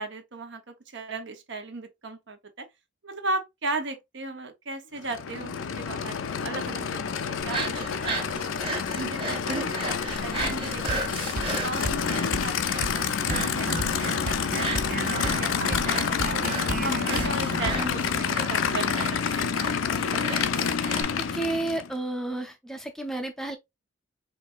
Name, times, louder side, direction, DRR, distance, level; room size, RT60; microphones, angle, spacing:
voice 1, 0.0-2.7 3.0-8.5 8.9-11.2 11.6-16.0 16.3-16.4 16.8-19.0 19.4-19.6, right 2 dB, 65° right, 1.0 m, -36 dB
Aircraft / Idling, 5.0-21.9, left 6 dB, 85° left, 0.5 m, -28 dB
sound 1, 7.4-21.0, right 3 dB, 25° right, 1.3 m, -36 dB
sound 2, 10.4-10.6 10.9-11.1 11.4-11.5 11.8-12.0 12.3-12.5 12.8-13.0 13.3-17.9, right 3 dB, 45° right, 0.6 m, -33 dB
voice 2, 21.1-23.6, right 2 dB, ahead, 0.5 m, -31 dB
5.0 x 3.2 x 2.5 m
head